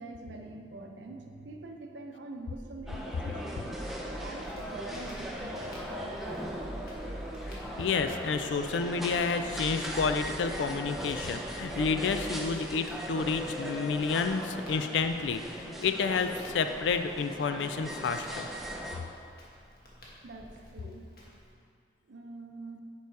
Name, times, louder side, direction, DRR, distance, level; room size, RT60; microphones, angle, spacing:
voice 1, 0.0-6.8 20.2-21.0 22.1-22.8, right 2 dB, 85° right, 3 dB, 0.7 m, -45 dB
sound 1, 2.5-12.6, equal, 40° right, 0.8 m, -44 dB
sound 2, 2.9-19.0, equal, ahead, 0.5 m, -39 dB
Crackle, 4.4-21.5, equal, 55° left, 1.3 m, -54 dB
voice 2, 7.8-18.5, left 5 dB, 85° left, 8 dB, 0.4 m, -30 dB
6.9 x 4.8 x 4.6 m, 2.4 s
head